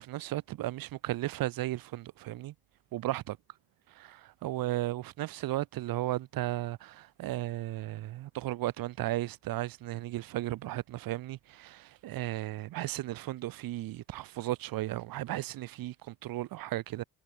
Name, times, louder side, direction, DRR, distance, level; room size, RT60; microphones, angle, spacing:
voice 1, 0.0-2.5 2.9-3.4 3.9-17.0, right 15 dB, 75° right, 5.6 m, -35 dB
cardioid pair, 155°, 35 cm